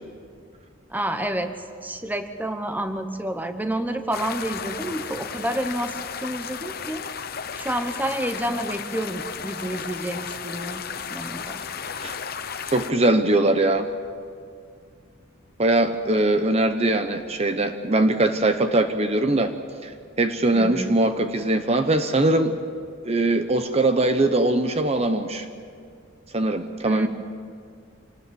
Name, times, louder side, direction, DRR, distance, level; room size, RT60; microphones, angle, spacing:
voice 1, 0.9-1.5 1.8-7.0 7.5-10.8 11.1-11.6 20.5-20.9 26.8-27.1, right 1 dB, 10° right, 8 dB, 1.0 m, -29 dB
sound 1, 4.1-12.9, left 6 dB, 50° left, 0.9 m, -34 dB
voice 2, 12.7-13.9 15.6-19.5 19.8-19.9 20.2-22.6 23.0-25.5 26.3-27.1, right 2 dB, 30° right, 8 dB, 0.9 m, -21 dB
26.0 x 19.5 x 7.7 m, 2.2 s
head